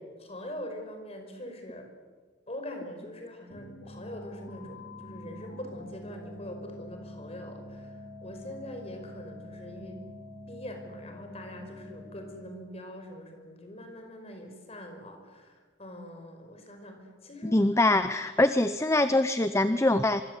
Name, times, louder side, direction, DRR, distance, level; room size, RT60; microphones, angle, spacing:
voice 1, 0.2-1.9 2.5-10.0 10.5-17.6, left 1 dB, 35° left, 5 dB, 5.4 m, -43 dB
sound 1, 3.5-12.7, left 1 dB, 85° left, 4.5 m, -46 dB
voice 2, 17.5-20.2, left 2 dB, 15° left, 11 dB, 0.7 m, -23 dB
25.5 x 24.5 x 8.3 m, 1.4 s
head